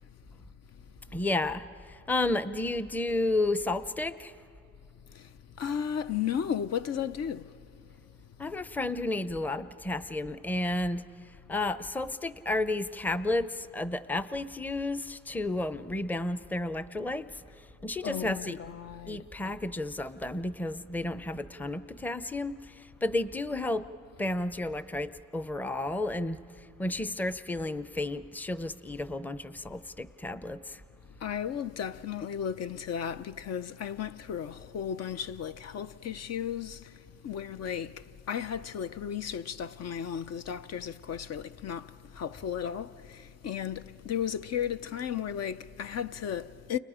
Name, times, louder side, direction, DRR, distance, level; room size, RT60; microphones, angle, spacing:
voice 1, 1.1-4.3 8.4-18.6 19.1-23.9 24.2-30.8, left 2 dB, 5° left, 0.6 m, -32 dB
voice 2, 5.6-7.5 18.0-19.2 31.2-36.9 37.2-46.8, left 8 dB, 55° left, 0.6 m, -34 dB
30.0 x 29.5 x 5.0 m
cardioid pair, 90°, 30 cm